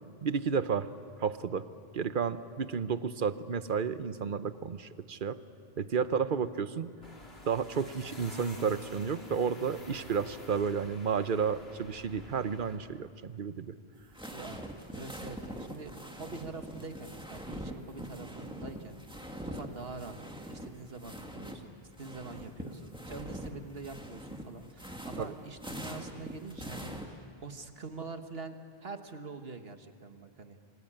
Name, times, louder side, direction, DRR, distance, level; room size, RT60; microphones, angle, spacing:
voice 1, 0.2-0.9 1.2-1.7 1.9-5.4 5.8-6.9 7.5-13.8 25.2-25.3, right 6 dB, 55° right, 12 dB, 1.0 m, -32 dB
sound 1, 7.0-12.8, left 1 dB, 80° left, 3.3 m, -49 dB
sound 2, 13.9-21.6 21.9-27.1, equal, 5° right, 2.1 m, -43 dB
voice 2, 14.3-19.0 19.4-28.6 28.8-30.6, right 4 dB, 70° right, 7 dB, 1.8 m, -45 dB
27.5 x 24.0 x 8.9 m, 2.1 s
omnidirectional pair, 1.0 m